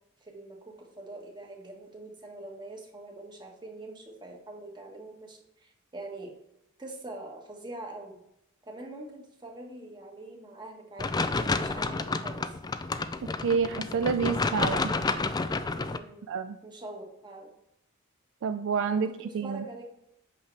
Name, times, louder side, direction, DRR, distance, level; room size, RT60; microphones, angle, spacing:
voice 1, 0.2-6.3 6.8-8.2 8.7-12.5 15.8-16.3 16.6-17.5 18.8-19.8, right 2 dB, 20° right, 1 dB, 1.5 m, -44 dB
sound 1, 11.0-16.0, left 3 dB, 20° left, 0.3 m, -30 dB
voice 2, 13.4-14.9 16.3-16.6 18.4-19.6, right 5 dB, 60° right, 9 dB, 0.4 m, -28 dB
8.5 x 5.8 x 3.4 m, 0.79 s
head